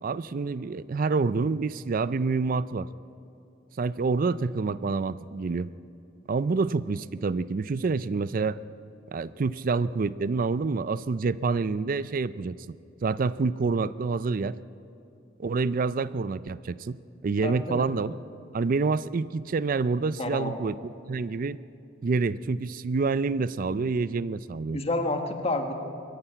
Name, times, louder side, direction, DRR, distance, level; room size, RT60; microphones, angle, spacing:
voice 1, 0.0-2.9 3.8-5.7 6.3-8.6 9.1-12.8 13.0-14.6 15.4-17.0 17.2-18.2 18.5-20.8 21.1-21.6 22.0-24.8, right 4 dB, 45° right, 16 dB, 0.4 m, -27 dB
voice 2, 17.4-17.8 20.2-20.6 24.7-25.7, left 2 dB, 35° left, 5 dB, 1.6 m, -29 dB
22.5 x 14.0 x 9.0 m, 2.6 s
head